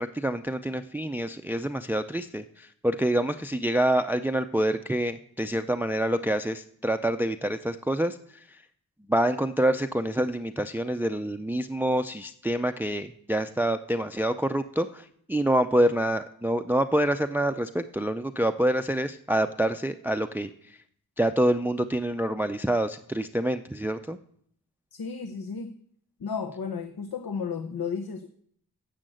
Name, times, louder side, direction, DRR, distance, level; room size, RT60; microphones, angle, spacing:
voice 1, 0.0-8.2 8.5-8.6 9.1-20.8 21.2-24.2, right 1 dB, 5° right, 9 dB, 0.4 m, -27 dB
voice 2, 24.9-25.8 26.2-28.3, left 6 dB, 75° left, 7 dB, 0.8 m, -33 dB
10.5 x 6.5 x 7.8 m, 0.66 s
cardioid pair, 45°, 37 cm